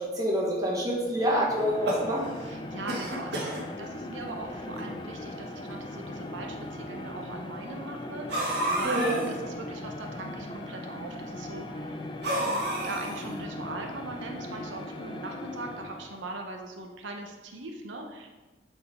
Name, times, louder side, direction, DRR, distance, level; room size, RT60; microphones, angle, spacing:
voice 1, 0.0-2.2 8.8-9.2, equal, 20° right, -3 dB, 1.2 m, -27 dB
sound 1, 1.0-16.3, left 1 dB, 25° left, 0.4 m, -39 dB
sound 2, 1.6-2.5 2.9-3.6 4.4-4.5 4.8-4.9 5.8-5.9 8.3-9.3 12.2-13.4, right 1 dB, 65° right, 1.5 m, -30 dB
voice 2, 2.4-18.3, right 2 dB, 90° right, 2 dB, 0.8 m, -40 dB
7.9 x 4.3 x 3.5 m, 1.2 s
head